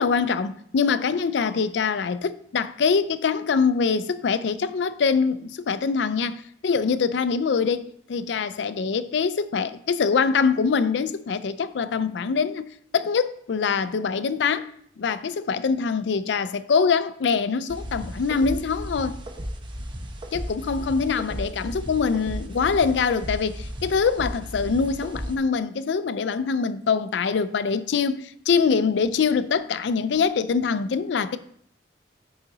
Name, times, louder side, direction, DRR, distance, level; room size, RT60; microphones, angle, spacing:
voice 1, 0.0-14.7 15.0-19.2 20.3-31.4, left 5 dB, 70° left, 0.4 m, -24 dB
sound 1, 17.7-25.4, equal, 25° right, 0.8 m, -35 dB
8.2 x 4.8 x 3.9 m
head